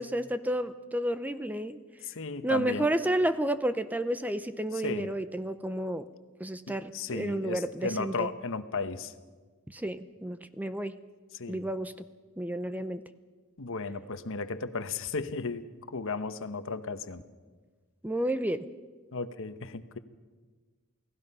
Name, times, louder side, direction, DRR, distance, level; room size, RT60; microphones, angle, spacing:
voice 1, 0.0-1.8 2.4-6.1 6.4-8.3 9.7-11.0 11.5-11.9 12.4-13.0 18.0-18.7, right 1 dB, 5° right, 12 dB, 0.6 m, -31 dB
voice 2, 2.0-2.9 4.8-5.1 6.7-9.1 11.3-11.6 13.6-17.2 19.1-20.0, left 4 dB, 65° left, 11 dB, 1.1 m, -35 dB
29.0 x 18.0 x 5.6 m, 1.4 s
head